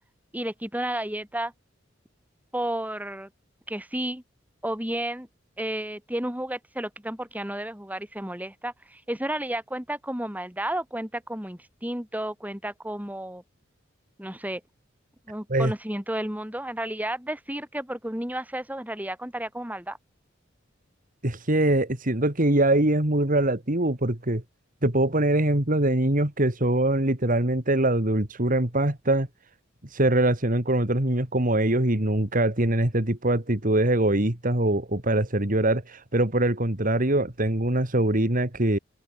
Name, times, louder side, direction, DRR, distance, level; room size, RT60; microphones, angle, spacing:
voice 1, 0.3-1.5 2.5-3.3 3.7-4.2 4.6-5.3 5.6-13.4 14.2-14.6 15.3-20.0, right 1 dB, 10° right, 7.2 m, -32 dB
voice 2, 21.2-24.4 24.8-29.3 29.9-38.8, right 1 dB, 45° right, 2.7 m, -23 dB
open air
head